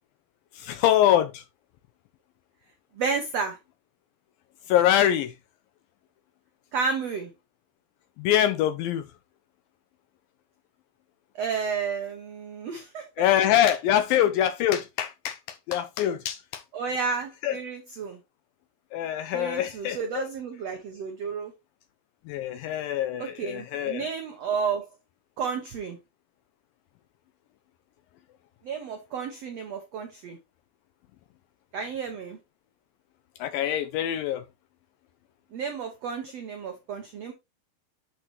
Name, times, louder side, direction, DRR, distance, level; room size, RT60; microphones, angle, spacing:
voice 1, 0.6-1.4 4.7-5.3 8.2-9.1 13.2-16.6 17.4-17.6 18.9-20.2 22.3-24.1 33.4-34.4, left 11 dB, 85° left, 2.1 m, -24 dB
voice 2, 3.0-3.6 6.7-7.3 11.3-13.1 16.7-18.2 19.3-21.5 23.2-24.9 25.4-26.0 28.6-30.4 31.7-32.4 35.5-37.3, right 5 dB, 90° right, 1.4 m, -31 dB
11.5 x 4.5 x 2.9 m
omnidirectional pair, 4.6 m